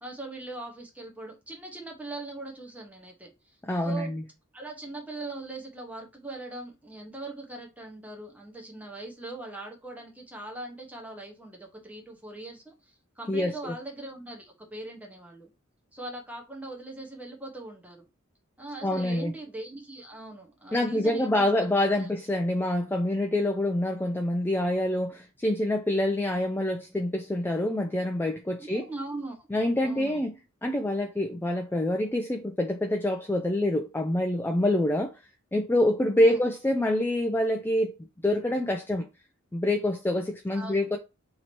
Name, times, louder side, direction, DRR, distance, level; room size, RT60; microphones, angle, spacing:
voice 1, 0.0-3.6 3.8-4.1 4.5-15.5 15.9-18.1 18.6-21.5 21.8-22.1 28.6-29.5 29.8-30.2 36.2-36.4 40.5-40.8, right 2 dB, 5° right, 0.8 m, -41 dB
voice 2, 3.6-4.2 13.3-13.7 18.8-19.3 20.7-28.9 29.5-30.3 30.6-35.1 35.5-38.0 38.2-39.1 39.5-41.0, left 1 dB, 10° left, 0.3 m, -26 dB
3.0 x 2.8 x 4.3 m
head